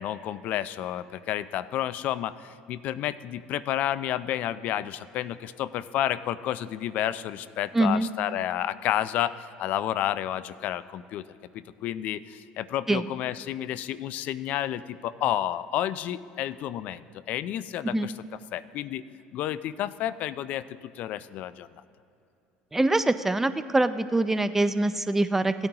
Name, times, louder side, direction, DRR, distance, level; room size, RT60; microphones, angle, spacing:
voice 1, 0.0-11.3 11.5-18.1 18.5-19.0 19.3-20.6 21.0-21.7, left 12 dB, 60° left, 16 dB, 0.4 m, -30 dB
voice 2, 7.7-8.1 12.9-13.0 17.8-18.1 22.7-25.5, right 2 dB, 10° right, 12 dB, 0.4 m, -24 dB
16.5 x 8.9 x 2.9 m, 2.7 s
supercardioid pair, 100°, 3 cm